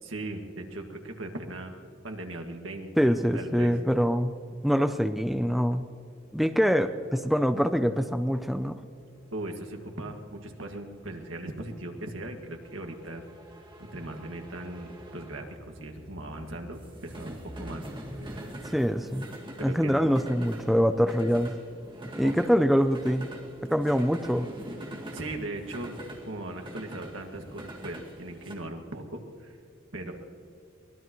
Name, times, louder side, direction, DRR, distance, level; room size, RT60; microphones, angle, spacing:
voice 1, 0.0-1.7 2.0-3.7 9.3-13.2 13.8-17.8 18.2-18.6 19.6-20.1 22.2-22.3 25.1-25.9 26.3-29.6 29.9-30.1, right 1 dB, 70° right, 3 dB, 2.0 m, -39 dB
voice 2, 3.0-4.3 4.6-5.8 6.3-8.8 18.6-19.3 19.6-21.5 22.2-23.3 23.7-24.5, equal, ahead, 8 dB, 0.5 m, -24 dB
sound 1, 9.0-28.6, right 1 dB, 25° right, 2.1 m, -44 dB
23.5 x 19.5 x 3.1 m, 2.5 s
head